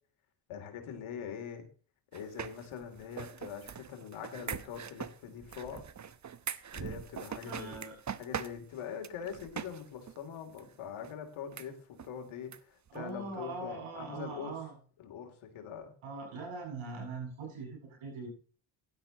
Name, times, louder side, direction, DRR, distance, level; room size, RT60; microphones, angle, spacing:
voice 1, 0.5-1.6 2.1-5.9 6.7-7.8 8.2-14.5 15.0-15.9, left 7 dB, 75° left, 5 dB, 3.0 m, -43 dB
sound 1, 2.1-9.8 10.1-10.2 10.6-10.7 11.0-11.1 11.5-11.7 12.0-12.1 12.5-12.6 12.9-13.0, right 7 dB, 35° right, 1.0 m, -42 dB
voice 2, 7.4-8.0 12.9-14.7 16.0-18.3, right 4 dB, 75° right, 1 dB, 7.9 m, -41 dB
16.5 x 11.5 x 2.9 m, 0.39 s
supercardioid pair, 60°, 49 cm